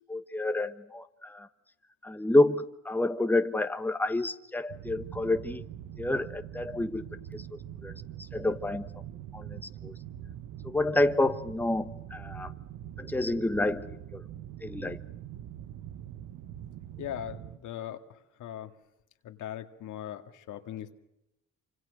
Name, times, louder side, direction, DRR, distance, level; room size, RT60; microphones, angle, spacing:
voice 1, 0.1-1.5 2.0-5.6 6.0-7.4 7.8-7.9 8.3-8.9 9.3-9.9 10.6-12.5 13.0-14.2 14.6-15.0, left 2 dB, 5° left, 9 dB, 1.2 m, -29 dB
sound 1, 4.7-17.6, right 11 dB, 85° right, 1.1 m, -43 dB
voice 2, 17.0-18.0 18.4-18.7 19.2-20.9, left 11 dB, 80° left, 7 dB, 2.1 m, -39 dB
27.5 x 26.0 x 6.5 m, 0.86 s
cardioid pair, 90°, 30 cm